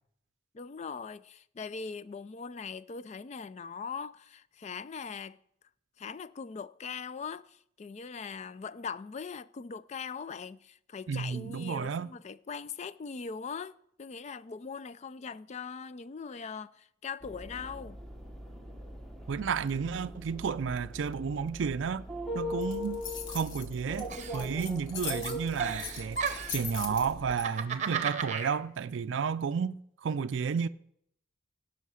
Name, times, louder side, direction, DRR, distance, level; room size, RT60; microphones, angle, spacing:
voice 1, 0.5-5.4 6.0-18.0, left 5 dB, 35° left, 0.3 m, -41 dB
voice 2, 11.1-12.1 19.3-22.0 22.3-23.0 23.3-26.2 26.5-30.7, right 6 dB, 70° right, 0.4 m, -32 dB
sound 1, 17.2-27.3, left 1 dB, ahead, 1.0 m, -41 dB
sound 2, 22.6-27.4, left 7 dB, 80° left, 1.5 m, -40 dB
Giggle, 24.1-24.9 25.2-26.7 27.2-28.5, right 6 dB, 35° right, 0.8 m, -34 dB
16.5 x 5.7 x 6.3 m
head